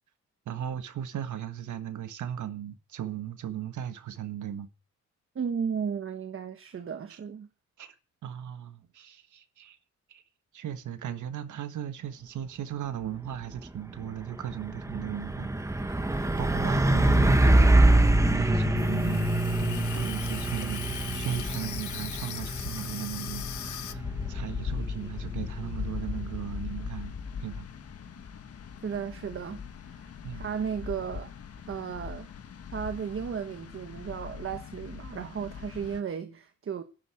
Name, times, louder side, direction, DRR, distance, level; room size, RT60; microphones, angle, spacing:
voice 1, 0.4-4.7 7.1-7.2 7.8-7.9 8.2-9.8 10.1-10.2 10.5-24.0 24.3-27.1 27.4-27.7 30.2-30.5, right 10 dB, 85° right, 1.6 m, -37 dB
voice 2, 5.3-7.5 28.8-31.3 31.7-32.3 32.7-36.8, right 7 dB, 45° right, 1.3 m, -35 dB
Truck, 13.4-13.7 14.0-26.6, right 1 dB, 10° right, 1.2 m, -25 dB
sound 1, 16.1-36.0, left 6 dB, 55° left, 1.6 m, -40 dB
Water tap faucet / Sink (filling or washing), 18.8-23.9, left 11 dB, 75° left, 1.0 m, -40 dB
12.0 x 8.2 x 8.8 m
wide cardioid pair, 140°, 30 cm